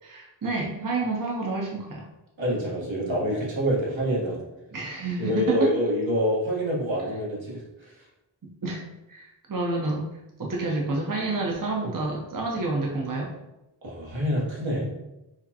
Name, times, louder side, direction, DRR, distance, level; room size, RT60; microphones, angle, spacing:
voice 1, 0.0-2.1 4.7-5.7 8.4-8.8 9.1-10.0 10.4-13.3, right 3 dB, 45° right, -1 dB, 0.7 m, -29 dB
voice 2, 2.4-4.4 5.2-7.6 13.8-14.9, equal, 80° right, -5 dB, 1.2 m, -26 dB
5.0 x 2.1 x 2.7 m, 0.94 s
wide cardioid pair, 45°, 46 cm